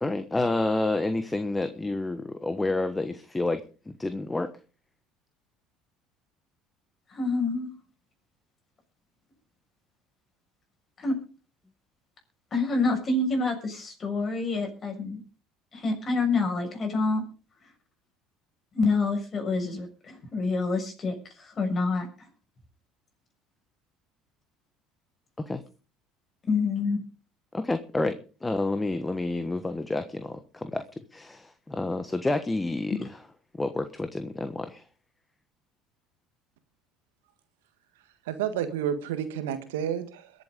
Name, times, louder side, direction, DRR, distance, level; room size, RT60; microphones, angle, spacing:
voice 1, 0.0-3.6 4.0-4.5 25.4-25.6 27.5-30.8 31.1-33.2 33.6-34.8, left 2 dB, 15° left, 10 dB, 1.3 m, -29 dB
voice 2, 7.1-7.7 11.0-11.2 12.5-15.2 15.7-17.2 18.7-22.3 26.5-27.0 32.9-33.0, left 3 dB, 35° left, 3 dB, 7.0 m, -27 dB
voice 3, 38.3-40.3, right 9 dB, 85° right, 10 dB, 1.6 m, -30 dB
22.5 x 8.2 x 5.3 m, 0.37 s
hypercardioid pair, 70°, 0 cm